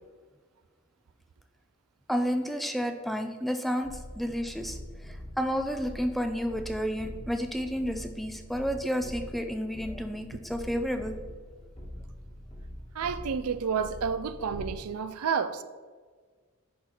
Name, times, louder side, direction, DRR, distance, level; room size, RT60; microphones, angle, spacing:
voice 1, 2.1-11.2, equal, ahead, 0.4 m, -31 dB
sound 1, 3.8-14.8, equal, 25° left, 1.5 m, -43 dB
voice 2, 12.9-15.6, right 6 dB, 80° right, 0.4 m, -30 dB
10.0 x 4.0 x 4.3 m
head